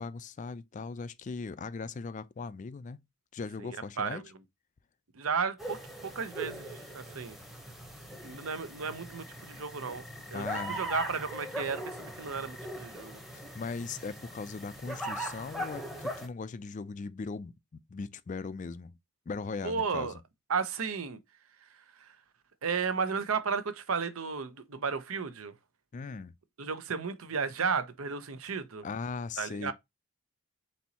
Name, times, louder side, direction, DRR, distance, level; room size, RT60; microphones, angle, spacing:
voice 1, 0.0-3.0 3.3-4.2 10.3-10.8 13.3-19.0 19.3-20.2 25.9-26.3 28.8-29.7, left 4 dB, 35° left, 0.3 m, -39 dB
voice 2, 3.6-4.3 5.1-7.4 8.2-13.2 19.6-20.1 20.5-21.2 22.0-22.1 22.6-25.5 26.6-28.8 29.4-29.7, right 5 dB, 70° right, 0.7 m, -34 dB
sound 1, 5.6-16.3, right 1 dB, ahead, 0.8 m, -40 dB
4.3 x 4.0 x 2.8 m
head